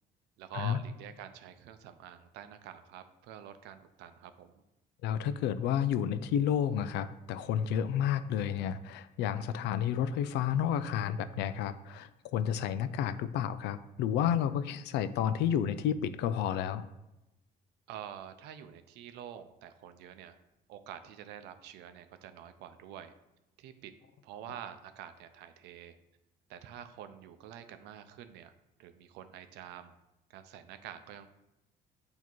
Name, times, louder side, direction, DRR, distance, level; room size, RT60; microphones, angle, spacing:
voice 1, 0.4-4.6 17.9-20.4 20.7-23.1 23.6-23.9 24.2-26.0 26.5-28.5 28.8-29.9 30.3-31.3, right 10 dB, 90° right, 9 dB, 0.6 m, -47 dB
voice 2, 5.0-16.8, left 9 dB, 85° left, 13 dB, 0.4 m, -31 dB
8.2 x 2.9 x 4.5 m, 0.94 s
cardioid pair, 110°, 17 cm